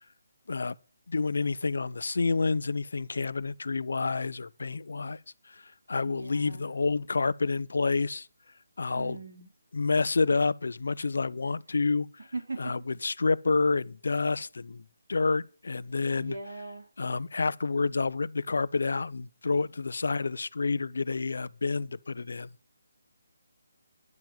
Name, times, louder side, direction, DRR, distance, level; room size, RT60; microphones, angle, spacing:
voice 1, 1.1-5.2 5.4-8.3 8.8-9.2 9.7-12.3 12.6-16.4 17.0-22.5, left 4 dB, 60° left, 0.6 m, -29 dB
voice 2, 6.0-6.7 8.9-9.5 12.3-12.7 16.2-16.9, right 3 dB, 75° right, 4.5 m, -39 dB
10.5 x 7.2 x 7.5 m
hypercardioid pair, 180°, 0 cm